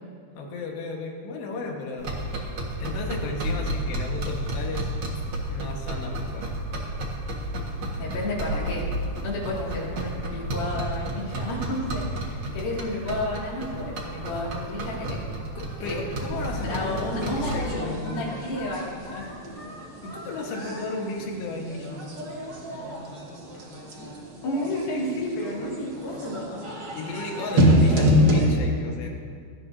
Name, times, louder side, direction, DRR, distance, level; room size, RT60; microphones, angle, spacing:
voice 1, 0.3-2.1 2.8-4.9 5.5-6.6 15.6-18.5 20.0-22.1 26.9-29.1, left 2 dB, 80° left, 0 dB, 3.6 m, -34 dB
sound 1, 2.0-17.7, right 1 dB, 55° right, 1.4 m, -32 dB
voice 2, 8.0-8.9 9.2-15.2 15.8-19.3 24.4-26.6, left 1 dB, 60° left, -4 dB, 4.0 m, -32 dB
Singing, 14.0-20.9, left 1 dB, 40° left, 4.4 m, -45 dB
sound 2, 16.3-28.5, equal, 80° right, 0.9 m, -27 dB
18.5 x 13.0 x 2.7 m, 2.1 s
omnidirectional pair, 4.9 m